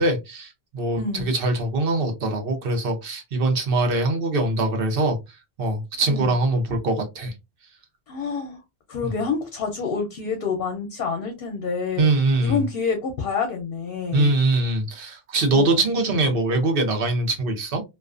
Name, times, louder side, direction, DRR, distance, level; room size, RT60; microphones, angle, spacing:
voice 1, 0.0-5.2 5.6-7.3 12.0-12.6 14.1-17.8, right 2 dB, 65° right, 0.9 m, -22 dB
voice 2, 1.0-1.3 6.1-6.3 8.1-8.6 8.9-12.0 12.4-14.3 15.5-16.2, left 5 dB, 65° left, 0.7 m, -28 dB
2.3 x 2.2 x 2.3 m
omnidirectional pair, 1.0 m